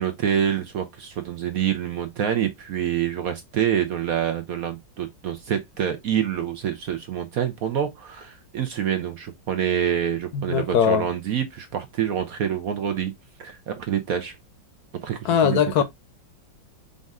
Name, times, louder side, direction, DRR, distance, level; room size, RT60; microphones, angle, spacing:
voice 1, 0.0-13.1 13.4-14.3 15.0-15.8, right 9 dB, 65° right, 0.9 m, -26 dB
voice 2, 10.3-11.1 15.2-15.8, left 7 dB, 65° left, 1.1 m, -20 dB
5.3 x 2.5 x 3.5 m
omnidirectional pair, 2.1 m